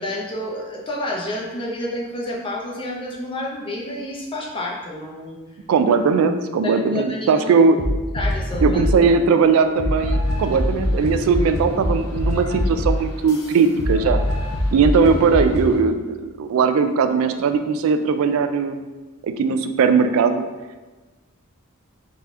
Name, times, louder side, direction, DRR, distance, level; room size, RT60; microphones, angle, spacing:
voice 1, 0.0-5.4 6.6-7.5 8.1-8.8, left 1 dB, 25° left, -2 dB, 0.6 m, -29 dB
voice 2, 5.7-7.9 8.6-14.2 14.7-18.9 19.2-20.4, right 5 dB, 75° right, 8 dB, 0.3 m, -19 dB
sound 1, 7.8-9.1 9.8-15.8, left 1 dB, 75° left, 0.6 m, -23 dB
3.9 x 2.8 x 3.6 m, 1.2 s
head